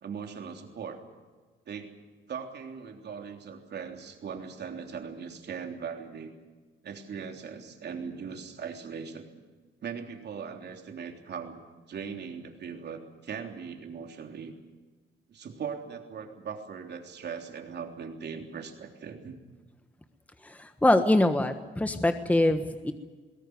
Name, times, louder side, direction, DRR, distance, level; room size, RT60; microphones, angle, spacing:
voice 1, 0.0-1.0 1.7-1.9 2.3-6.3 6.8-9.4 9.8-11.6 11.9-14.6 15.3-19.4, right 6 dB, 60° right, 4 dB, 3.4 m, -39 dB
voice 2, 20.4-22.9, left 1 dB, 5° left, 8 dB, 1.3 m, -24 dB
22.0 x 17.5 x 9.6 m, 1.4 s
cardioid pair, 90°, 20 cm